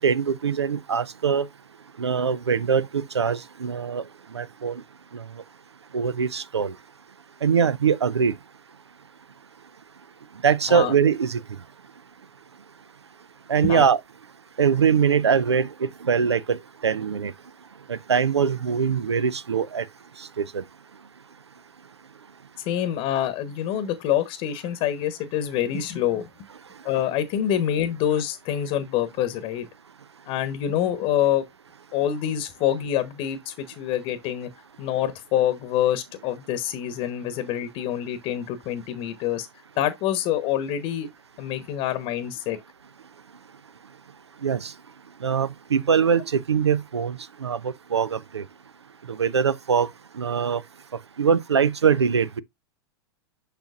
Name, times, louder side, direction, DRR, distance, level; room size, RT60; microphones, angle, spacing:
voice 1, 0.0-1.5 2.0-4.0 4.3-4.8 5.1-5.2 5.9-6.7 7.4-8.3 10.4-11.4 13.5-14.0 14.6-16.6 16.8-17.3 17.9-19.9 20.4-20.6 44.4-44.7 45.2-48.4 49.1-49.9 50.1-50.6 51.2-52.4, right 6 dB, 85° right, 0.5 m, -22 dB
voice 2, 22.7-26.4 26.8-29.7 30.3-31.4 31.9-34.5 34.8-39.5 39.8-41.1 41.4-42.6, left 11 dB, 45° left, 1.0 m, -26 dB
6.8 x 6.0 x 2.4 m
figure-of-eight pair, 95°, 14 cm